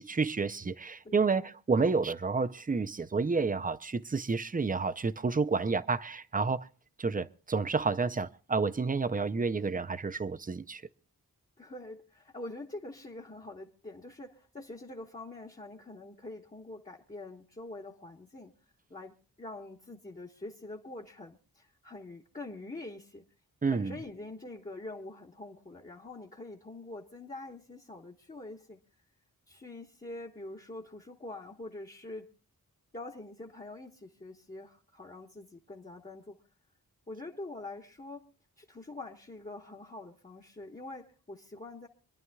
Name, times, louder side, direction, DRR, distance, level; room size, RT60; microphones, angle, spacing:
voice 1, 0.0-6.7 7.0-10.8 23.6-24.0, right 4 dB, 25° right, 0.6 m, -30 dB
voice 2, 1.0-1.5 9.4-9.8 11.6-18.5 18.9-23.2 23.7-28.8 29.5-32.3 32.9-36.4 37.1-38.3 38.6-41.9, left 2 dB, 20° left, 1.4 m, -45 dB
26.5 x 11.0 x 2.3 m
wide cardioid pair, 100°, 36 cm